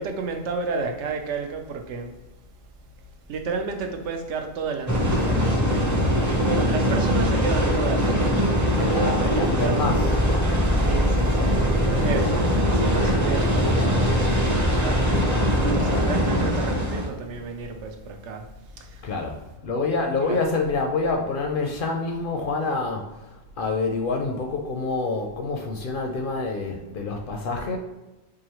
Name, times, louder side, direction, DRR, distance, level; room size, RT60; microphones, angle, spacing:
voice 1, 0.0-2.1 3.3-6.0 6.4-10.0 10.8-18.4 18.7-19.1 20.2-20.4, right 4 dB, 85° right, 4 dB, 0.9 m, -32 dB
sound 1, 4.9-17.1, equal, 20° right, 0.5 m, -21 dB
voice 2, 8.8-10.1 19.0-27.8, left 3 dB, 60° left, 2 dB, 0.6 m, -27 dB
4.7 x 2.5 x 2.9 m, 1.1 s
omnidirectional pair, 1.2 m